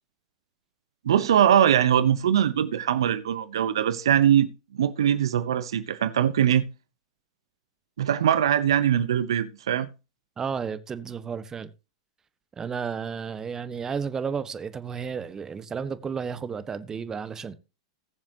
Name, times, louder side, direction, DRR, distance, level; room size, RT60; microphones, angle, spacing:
voice 1, 1.0-4.5 4.8-6.6 8.0-9.9, right 9 dB, 75° right, 0.9 m, -22 dB
voice 2, 10.4-11.7 12.6-17.5, right 6 dB, 20° right, 1.3 m, -32 dB
20.5 x 7.3 x 2.9 m
hypercardioid pair, 100°, 3 cm